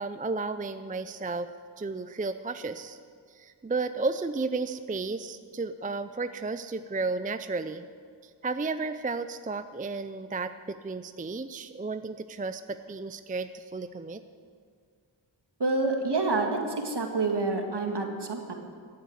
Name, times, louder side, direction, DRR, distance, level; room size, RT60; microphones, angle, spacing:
voice 1, 0.0-3.0 3.3-7.9 8.2-14.2, right 3 dB, 20° right, 11 dB, 0.5 m, -33 dB
voice 2, 15.6-18.5, right 3 dB, 55° right, 3 dB, 2.0 m, -28 dB
15.0 x 8.0 x 8.0 m, 2.1 s
cardioid pair, 45°, 48 cm